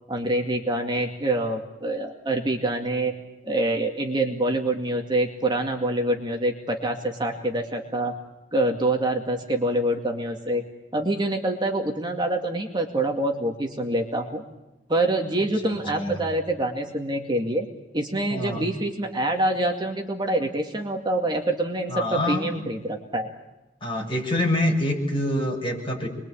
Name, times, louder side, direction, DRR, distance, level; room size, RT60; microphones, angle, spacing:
voice 1, 0.1-3.1 3.4-8.1 8.5-10.6 10.9-14.4 14.9-17.7 17.9-23.3, right 1 dB, 25° right, 2 dB, 2.3 m, -26 dB
voice 2, 15.6-16.2 18.3-18.6 21.9-22.7 23.8-26.1, left 1 dB, 30° left, 0 dB, 7.5 m, -26 dB
29.0 x 22.5 x 8.7 m, 0.99 s
head